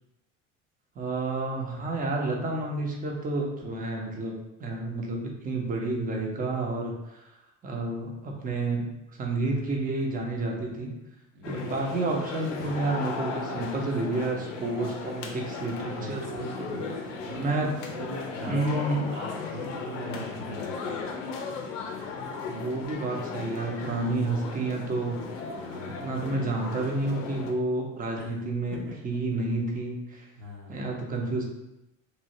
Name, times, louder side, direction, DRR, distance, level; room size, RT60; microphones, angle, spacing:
voice 1, 1.0-7.2 7.6-8.9 9.2-10.9 11.4-16.2 17.3-17.8 18.4-19.1 22.5-25.2 26.0-28.8 29.0-30.2 30.7-31.4, right 2 dB, 20° right, 0 dB, 0.7 m, -30 dB
voice 2, 11.3-11.7 15.9-16.9 17.2-17.6 17.9-21.1 25.6-26.3 28.2-28.3 28.7-28.8 30.4-30.8, right 1 dB, 50° right, -4 dB, 0.9 m, -40 dB
sound 1, 11.4-27.5, left 4 dB, 70° left, 0.5 m, -36 dB
3.1 x 2.7 x 2.7 m, 0.91 s
figure-of-eight pair, 65°, 38 cm